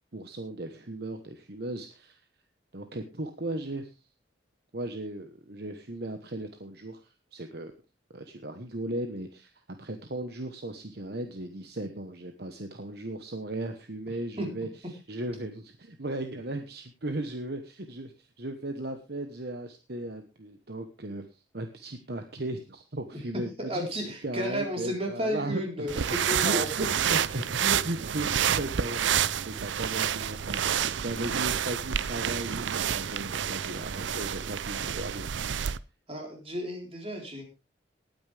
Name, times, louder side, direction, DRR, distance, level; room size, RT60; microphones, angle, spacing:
voice 1, 0.1-2.2 2.7-4.0 4.7-7.7 8.1-9.5 9.8-14.7 15.1-26.1 26.4-29.2 29.5-35.5, right 1 dB, 55° right, 7 dB, 1.1 m, -36 dB
voice 2, 23.6-26.7 36.1-37.4, equal, 30° right, 1 dB, 4.1 m, -33 dB
sound 1, 25.9-35.8, right 9 dB, 70° right, 0.5 m, -29 dB
19.0 x 9.3 x 3.4 m, 0.28 s
head